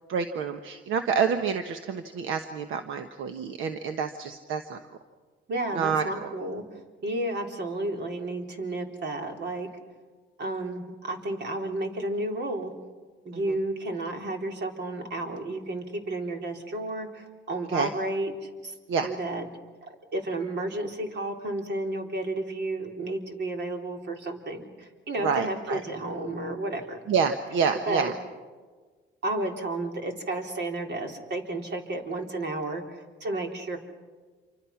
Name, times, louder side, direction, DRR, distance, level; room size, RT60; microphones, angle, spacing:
voice 1, 0.1-4.8 5.7-6.3 13.4-13.5 17.7-17.9 18.9-19.1 25.2-25.8 27.1-28.1, right 6 dB, 85° right, 7 dB, 1.3 m, -28 dB
voice 2, 5.5-6.6 7.0-9.7 10.4-12.7 13.3-18.7 19.0-19.4 19.8-27.0 27.9-28.1 29.2-32.8 33.2-33.8, right 2 dB, 60° right, 3 dB, 3.9 m, -32 dB
27.5 x 25.0 x 6.0 m, 1.4 s
cardioid pair, 90°, 20 cm